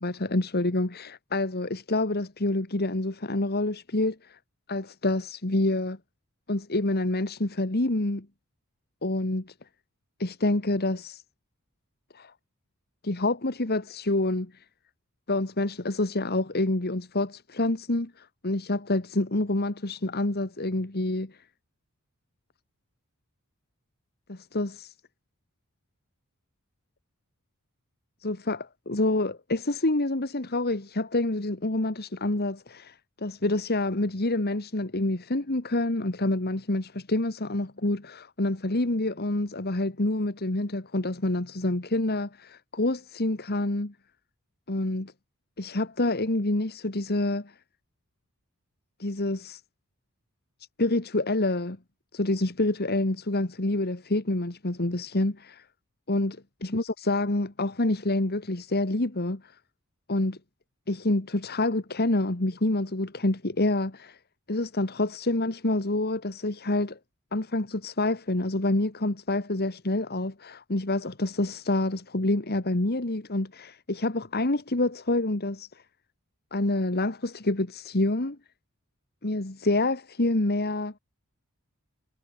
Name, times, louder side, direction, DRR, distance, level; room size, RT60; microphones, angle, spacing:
voice 1, 0.0-4.4 4.7-6.0 6.5-8.3 9.0-9.5 10.2-11.2 12.1-12.3 13.0-14.6 15.3-21.4 24.3-24.9 28.2-43.9 44.7-45.1 45.6-47.5 49.0-49.6 50.8-51.8 52.1-55.6 56.1-59.4 60.1-60.4 60.9-64.2 64.5-67.0 67.3-75.8 76.5-78.4 79.2-80.9, left 2 dB, 45° left, 1.7 m, -27 dB
head